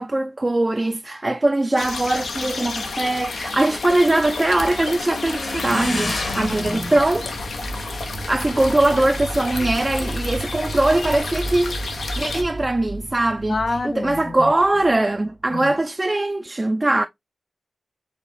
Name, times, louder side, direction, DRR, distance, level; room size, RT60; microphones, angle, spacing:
voice 1, 0.0-7.3 8.3-11.8 12.1-13.6 13.8-17.1, right 2 dB, 25° right, 0.4 m, -21 dB
sound 1, 1.8-12.4, left 3 dB, 85° left, 0.8 m, -31 dB
Motorcycle / Engine, 2.0-11.2, left 2 dB, 65° left, 1.8 m, -34 dB
sound 2, 6.4-15.5, right 2 dB, 60° right, 0.6 m, -34 dB
voice 2, 13.5-14.5 15.5-15.8, left 3 dB, 50° left, 0.5 m, -27 dB
4.7 x 2.9 x 2.6 m
wide cardioid pair, 70°, 0 cm